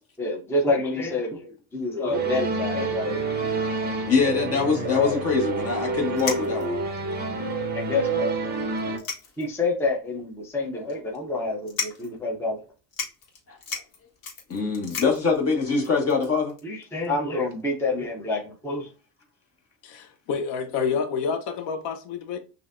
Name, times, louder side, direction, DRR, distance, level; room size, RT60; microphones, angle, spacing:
voice 1, 0.2-1.4 1.7-3.5 4.8-5.2 7.7-8.4 8.9-9.0 9.4-12.6 16.6-18.9, left 3 dB, 5° left, 0.6 m, -27 dB
sound 1, 2.1-9.0, right 4 dB, 25° right, 0.8 m, -28 dB
voice 2, 4.1-6.8 13.5-13.6 14.5-16.5, left 4 dB, 35° left, 1.4 m, -24 dB
sound 2, 5.7-5.8 6.2-6.8 7.5-7.6 7.8-7.9 8.8-9.6 10.0-10.1 10.9-11.2 11.6-12.2 12.6-12.7 12.9-16.6, left 5 dB, 55° left, 1.5 m, -35 dB
voice 3, 19.8-22.4, left 6 dB, 80° left, 1.0 m, -28 dB
6.5 x 2.6 x 2.5 m
cardioid pair, 155°, 43 cm